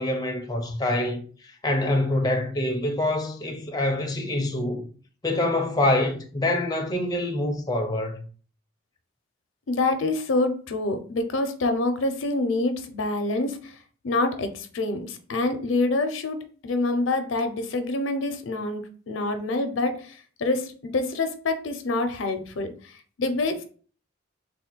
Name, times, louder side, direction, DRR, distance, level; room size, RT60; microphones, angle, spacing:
voice 1, 0.0-4.8 5.2-8.3, left 1 dB, 20° left, 0.5 m, -25 dB
voice 2, 9.7-13.7 14.0-22.7 23.2-23.6, left 2 dB, 80° left, 0.6 m, -26 dB
3.5 x 2.2 x 4.4 m
head